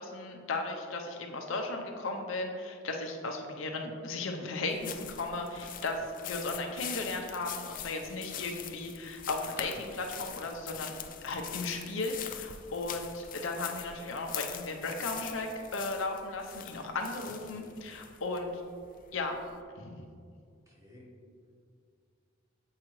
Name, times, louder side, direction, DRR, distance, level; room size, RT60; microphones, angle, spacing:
voice 1, 0.0-10.9 11.2-18.6 19.1-19.4 19.8-20.0, left 2 dB, 85° left, 3 dB, 0.7 m, -36 dB
sound 1, 4.7-19.6, left 10 dB, 45° left, 0.4 m, -43 dB
voice 2, 17.2-18.0 20.7-21.1, left 1 dB, 15° right, -5 dB, 1.3 m, -53 dB
7.6 x 4.7 x 3.1 m, 2.2 s
head